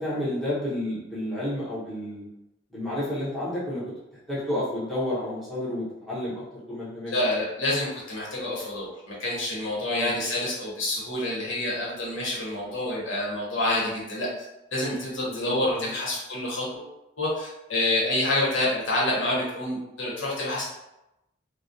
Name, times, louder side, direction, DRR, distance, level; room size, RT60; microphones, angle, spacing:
voice 1, 0.0-2.3 2.7-3.8 4.3-7.2 9.8-10.1 15.3-15.9, left 1 dB, ahead, -10 dB, 0.8 m, -31 dB
voice 2, 7.1-14.3 14.7-16.9 17.2-20.6, left 1 dB, 85° left, -5 dB, 0.9 m, -27 dB
2.3 x 2.0 x 2.6 m, 0.92 s
head